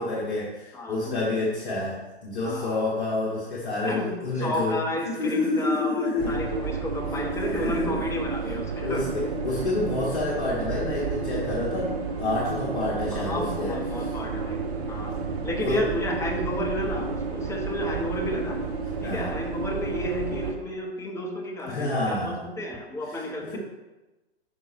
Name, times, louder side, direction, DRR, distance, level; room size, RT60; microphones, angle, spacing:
voice 1, 0.0-6.4 7.3-8.0 8.8-14.1 15.6-15.9 19.0-19.4 21.7-22.5 23.0-23.6, left 2 dB, 50° left, -5 dB, 1.4 m, -29 dB
voice 2, 0.7-1.3 2.4-2.8 3.8-4.1 4.4-9.0 13.1-15.1 15.4-18.6 19.0-23.6, left 1 dB, 10° left, -1 dB, 0.7 m, -32 dB
sound 1, 6.2-20.5, right 4 dB, 35° right, 1.0 m, -31 dB
5.9 x 5.2 x 4.5 m, 1.1 s
figure-of-eight pair, 115°, 33 cm